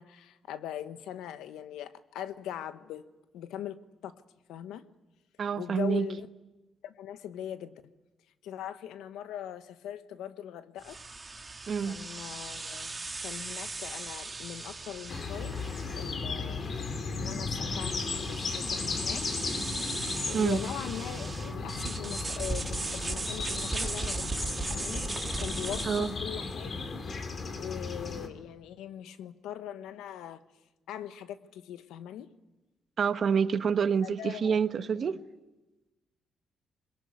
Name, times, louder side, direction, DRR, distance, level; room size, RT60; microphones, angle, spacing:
voice 1, 0.0-3.1 3.3-3.8 4.0-4.2 4.5-4.8 5.6-6.3 6.8-7.8 8.4-11.0 11.8-16.6 17.1-19.2 20.2-24.3 24.6-26.9 27.6-30.4 30.9-32.3 34.0-35.2, left 10 dB, 90° left, 1.2 m, -41 dB
voice 2, 5.4-6.0 11.7-12.0 20.3-20.6 25.9-26.1 33.0-35.2, right 6 dB, 50° right, 1.2 m, -27 dB
sound 1, 10.8-26.2, right 3 dB, 25° right, 2.1 m, -38 dB
sound 2, 15.1-28.3, left 4 dB, 45° left, 2.8 m, -35 dB
22.0 x 22.0 x 9.6 m
cardioid pair, 90°, 0 cm